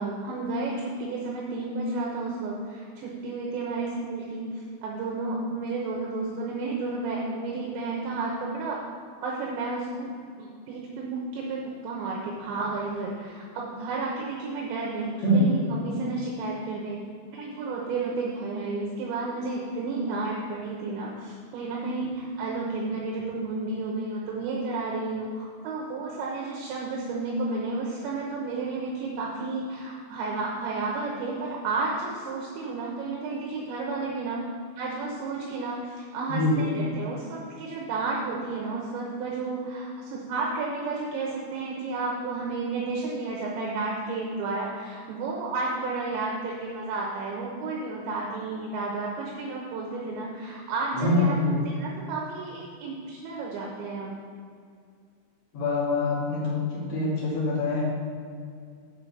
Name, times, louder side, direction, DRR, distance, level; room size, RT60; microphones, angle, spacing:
voice 1, 0.0-8.8 9.2-10.1 10.4-17.0 17.3-34.4 34.8-51.3 51.7-54.1, right 3 dB, 75° right, -2 dB, 3.1 m, -32 dB
voice 2, 36.3-36.6 50.9-51.5 55.5-57.8, left 2 dB, 40° left, -8 dB, 3.3 m, -24 dB
7.9 x 5.6 x 7.0 m, 2.3 s
omnidirectional pair, 5.5 m